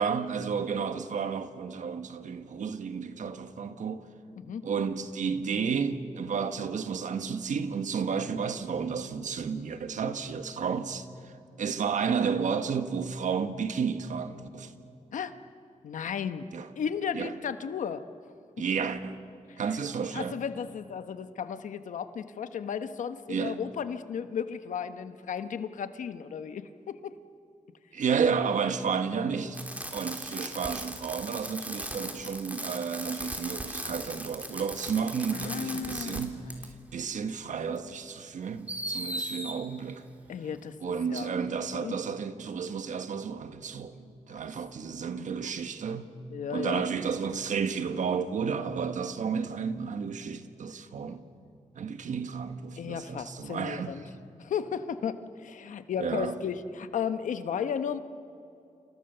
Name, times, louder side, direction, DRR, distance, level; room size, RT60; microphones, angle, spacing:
voice 1, 0.0-4.0 4.6-11.3 11.6-14.7 16.5-16.7 17.1-17.3 18.6-19.2 19.6-20.3 23.3-23.7 27.9-29.6 29.9-36.4 36.9-40.0 40.8-46.1 46.5-51.2 51.7-54.1 56.0-56.4, right 6 dB, 80° right, 1.6 m, -32 dB
voice 2, 15.8-16.5 16.8-18.0 19.5-19.6 20.1-27.2 35.3-36.3 40.3-41.3 41.7-42.0 45.1-45.5 46.3-46.8 52.8-54.0 54.4-58.0, left 7 dB, 90° left, 1.2 m, -34 dB
Fireworks, 29.5-36.2 36.5-36.7 37.7-37.8 38.7-39.5 41.2-41.3, right 1 dB, 10° right, 3.5 m, -37 dB
29.5 x 28.0 x 6.9 m
cardioid pair, 65°, 13 cm